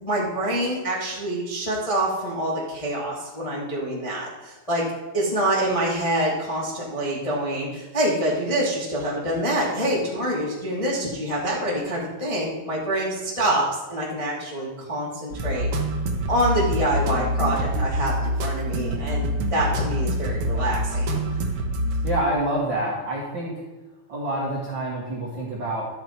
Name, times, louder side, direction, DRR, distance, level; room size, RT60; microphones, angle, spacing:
voice 1, 0.0-4.8 5.1-13.6 13.9-15.7 16.3-21.2, right 1 dB, 20° left, -5 dB, 1.0 m, -26 dB
sound 1, 15.3-22.1, equal, 90° right, 1.3 m, -26 dB
voice 2, 22.0-23.6 24.1-25.8, right 1 dB, 55° right, -5 dB, 1.4 m, -27 dB
12.0 x 6.9 x 4.5 m, 1.1 s
omnidirectional pair, 4.4 m